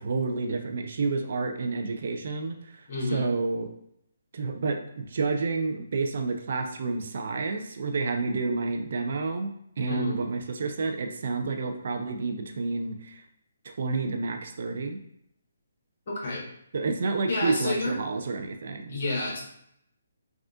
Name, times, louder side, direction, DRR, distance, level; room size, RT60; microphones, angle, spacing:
voice 1, 0.0-2.8 3.1-3.7 4.3-9.5 9.8-13.2 13.6-15.0 16.7-19.0, right 3 dB, 60° right, 5 dB, 0.4 m, -29 dB
voice 2, 2.9-3.3 9.9-10.2 16.1-16.4 17.3-17.9 18.9-19.4, left 2 dB, 50° left, -3 dB, 1.3 m, -29 dB
3.6 x 2.4 x 2.4 m, 0.72 s
hypercardioid pair, 150°, 0 cm